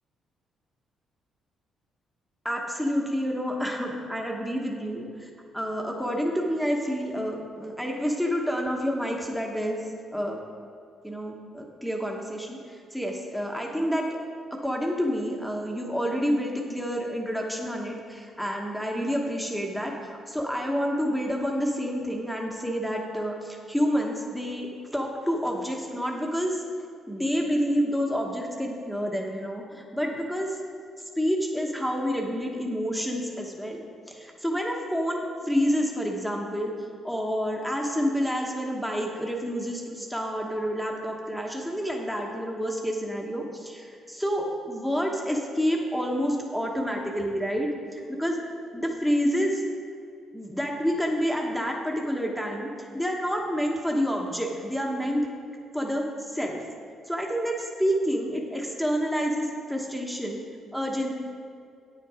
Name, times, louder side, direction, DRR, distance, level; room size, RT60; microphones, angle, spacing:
voice 1, 2.4-5.0 5.5-9.8 10.1-10.4 11.0-14.0 14.6-26.6 27.1-30.6 31.2-33.8 34.1-36.7 37.0-48.4 48.7-49.6 50.3-55.3 55.7-56.6 57.1-60.4 60.7-61.1, equal, ahead, 0 dB, 1.1 m, -28 dB
8.8 x 7.6 x 4.9 m, 2.4 s
cardioid pair, 90°, 0 cm